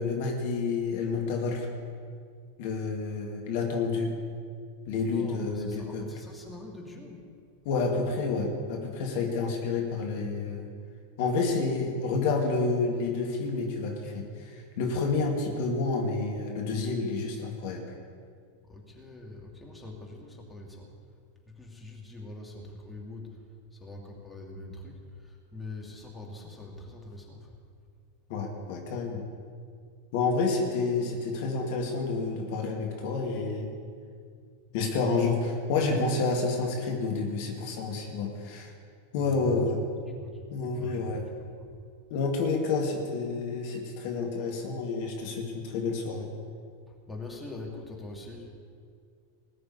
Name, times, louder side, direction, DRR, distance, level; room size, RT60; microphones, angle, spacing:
voice 1, 0.0-1.7 2.6-4.1 4.9-6.1 7.6-10.7 11.2-17.8 28.3-29.2 30.1-33.7 34.7-38.7 39.1-39.8 40.5-41.2 42.1-46.3, left 4 dB, 50° left, 1 dB, 2.2 m, -29 dB
voice 2, 5.0-7.2 18.7-20.9 21.6-23.3 23.8-25.0 25.2-27.5 39.2-39.7 40.2-40.4 40.7-41.1 47.1-48.5, left 2 dB, 5° left, -2 dB, 2.8 m, -43 dB
19.5 x 6.8 x 8.6 m, 2.2 s
figure-of-eight pair, 90°, 0 cm